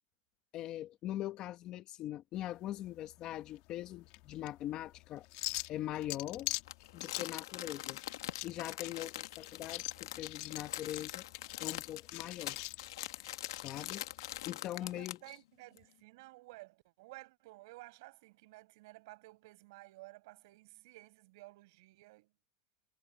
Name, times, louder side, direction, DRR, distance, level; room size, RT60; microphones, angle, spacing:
voice 1, 0.5-5.2 5.7-6.6 6.9-8.0 8.4-11.2 11.6-12.6 13.6-14.1 14.5-15.2, left 13 dB, 30° left, 1.0 m, -41 dB
sound 1, 2.3-14.5, left 22 dB, 45° left, 2.1 m, -44 dB
Crumpling crinkling, 6.7-15.3 15.8-15.9, left 14 dB, 80° left, 1.5 m, -44 dB
voice 2, 14.8-22.3, right 21 dB, 60° right, 5.3 m, -54 dB
supercardioid pair, 155°, 2 cm